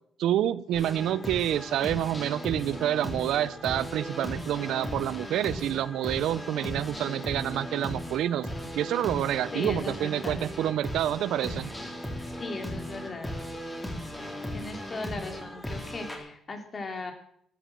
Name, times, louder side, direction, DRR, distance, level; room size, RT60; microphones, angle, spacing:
voice 1, 0.2-11.7, right 11 dB, 80° right, 17 dB, 0.6 m, -28 dB
sound 1, 0.7-16.2, equal, 10° left, 4.0 m, -37 dB
voice 2, 9.5-10.4 12.2-13.3 14.2-17.1, left 3 dB, 35° left, 5 dB, 3.3 m, -38 dB
13.5 x 10.0 x 7.8 m, 0.67 s
cardioid pair, 90°, 0 cm